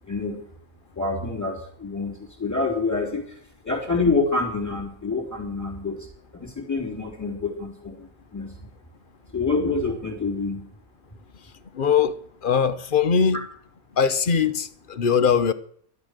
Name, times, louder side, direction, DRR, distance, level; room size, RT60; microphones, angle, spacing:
voice 1, 0.1-0.4 1.0-3.4 3.6-6.1 6.3-8.6 9.3-10.7, left 3 dB, 10° left, 3.6 m, -27 dB
voice 2, 11.7-13.5 14.0-15.5, left 6 dB, 45° left, 0.8 m, -21 dB
12.5 x 11.5 x 6.6 m
omnidirectional pair, 1.5 m